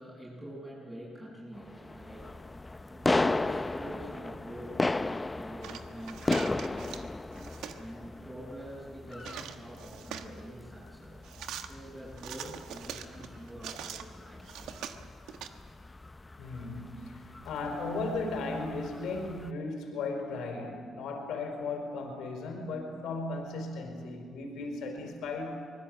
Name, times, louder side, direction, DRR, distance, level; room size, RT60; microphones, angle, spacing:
voice 1, 0.0-7.4 7.7-14.8, equal, 10° right, -5 dB, 7.7 m, -46 dB
sound 1, 1.6-19.5, left 2 dB, 20° left, 0.6 m, -36 dB
sound 2, 5.6-7.1 7.3-7.8 9.1-10.4 11.2-11.7 12.2-14.0 14.4-15.5, right 9 dB, 85° right, 1.3 m, -42 dB
voice 2, 16.4-25.5, left 3 dB, 80° left, 3 dB, 4.9 m, -36 dB
24.0 x 20.5 x 8.0 m, 2.3 s
cardioid pair, 90°, 0 cm